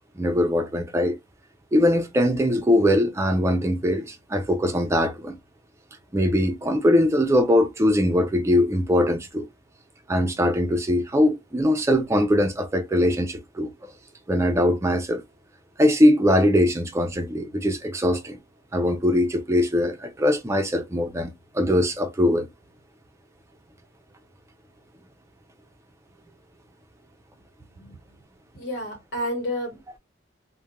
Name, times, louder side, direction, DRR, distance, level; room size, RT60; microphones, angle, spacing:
voice 1, 0.2-1.2 1.7-5.4 6.1-9.5 10.1-13.7 14.3-15.2 15.8-18.4 18.7-22.5, left 1 dB, 15° right, 0.4 m, -21 dB
voice 2, 28.5-30.0, equal, 60° left, 1.3 m, -31 dB
2.4 x 2.1 x 3.0 m
head